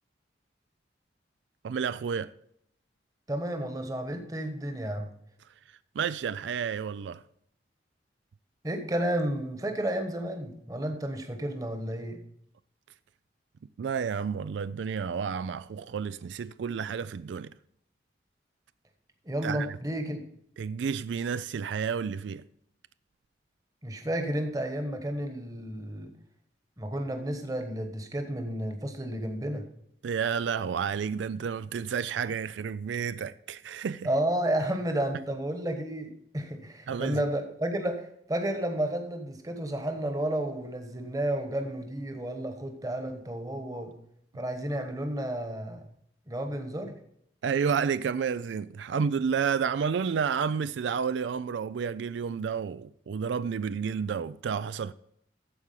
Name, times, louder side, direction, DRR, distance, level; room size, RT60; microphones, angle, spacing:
voice 1, 1.6-2.3 6.0-7.2 13.8-17.5 19.4-19.7 20.6-22.4 30.0-34.1 36.9-37.2 47.4-54.9, right 6 dB, 85° right, 0.4 m, -30 dB
voice 2, 3.3-5.1 8.6-12.2 19.2-20.2 23.8-26.1 26.8-29.6 34.0-43.9 44.3-45.9 46.3-46.9, right 1 dB, 20° right, 1.2 m, -32 dB
14.0 x 4.8 x 5.6 m
head